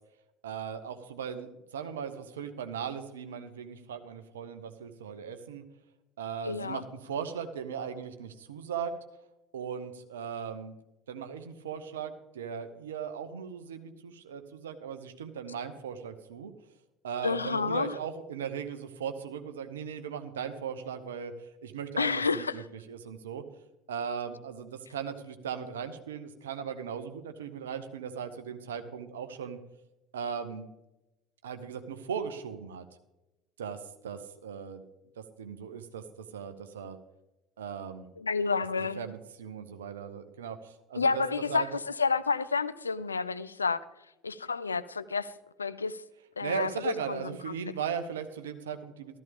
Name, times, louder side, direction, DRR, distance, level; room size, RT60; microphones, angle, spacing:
voice 1, 0.4-5.6 6.2-8.9 9.5-10.8 11.1-16.5 17.0-23.4 23.9-29.6 30.1-30.7 31.4-32.9 33.6-33.8 34.0-34.8 35.2-36.0 36.3-37.0 37.6-38.1 38.8-41.2 41.5-41.7 46.4-49.2, right 7 dB, 75° right, 9 dB, 0.9 m, -38 dB
voice 2, 6.4-6.8 17.2-17.9 22.0-22.6 38.2-39.0 40.9-41.7 42.0-43.8 44.2-45.3 45.6-46.0 46.4-46.7 47.1-47.2 47.5-47.6, left 4 dB, 85° left, 14 dB, 0.4 m, -29 dB
13.5 x 13.5 x 3.5 m, 0.96 s
figure-of-eight pair, 65°, 0 cm